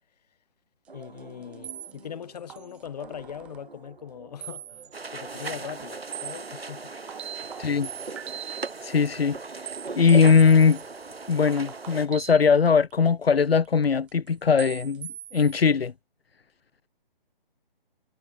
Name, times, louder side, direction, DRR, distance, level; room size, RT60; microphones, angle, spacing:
voice 1, 0.9-6.9 7.4-7.5, left 8 dB, 45° left, 5.3 m, -40 dB
sound 1, 0.9-10.3, right 4 dB, 70° right, 4.0 m, -50 dB
sound 2, 1.2-1.3 1.6-3.6 4.4-4.9 5.3-6.6 6.9-8.8 9.1-13.2 13.6-14.3 14.6-15.6, right 11 dB, 5° right, 0.5 m, -41 dB
sound 3, 4.9-12.1, right 4 dB, 90° right, 1.6 m, -38 dB
voice 2, 7.6-7.9 8.8-9.4 10.0-10.8 11.3-15.9, left 6 dB, 85° left, 0.8 m, -20 dB
figure-of-eight pair, 150°, 29 cm